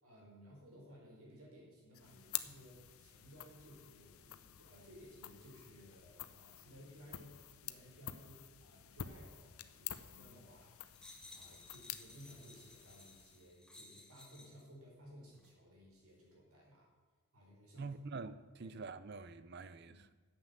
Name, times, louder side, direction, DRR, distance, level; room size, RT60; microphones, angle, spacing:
voice 1, 0.0-16.9 17.3-18.0 18.6-18.8 19.9-20.0, equal, 80° right, -2 dB, 4.2 m, -58 dB
sound 1, 1.9-13.6, left 11 dB, 75° left, 0.6 m, -49 dB
sound 2, 10.9-14.7 15.3-15.5, left 2 dB, 5° left, 1.1 m, -58 dB
voice 2, 17.8-20.1, right 4 dB, 50° right, 14 dB, 0.5 m, -46 dB
9.4 x 7.8 x 7.3 m, 1.5 s
head